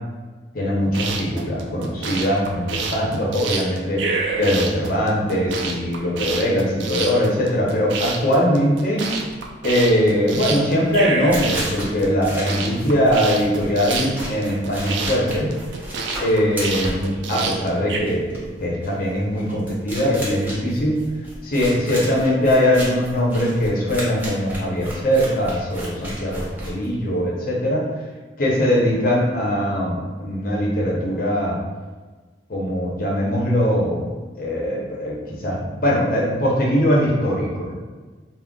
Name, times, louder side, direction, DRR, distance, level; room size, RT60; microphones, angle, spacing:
voice 1, 0.5-4.0 4.4-9.1 9.6-15.5 16.2-21.0 21.4-27.8 28.4-31.6 32.5-34.1 34.4-37.7, equal, 50° left, -4 dB, 0.7 m, -21 dB
sound 1, 0.8-18.0, right 4 dB, 80° right, 0.4 m, -28 dB
sound 2, 10.0-27.2, equal, 10° right, 0.6 m, -34 dB
2.3 x 2.0 x 3.6 m, 1.4 s
head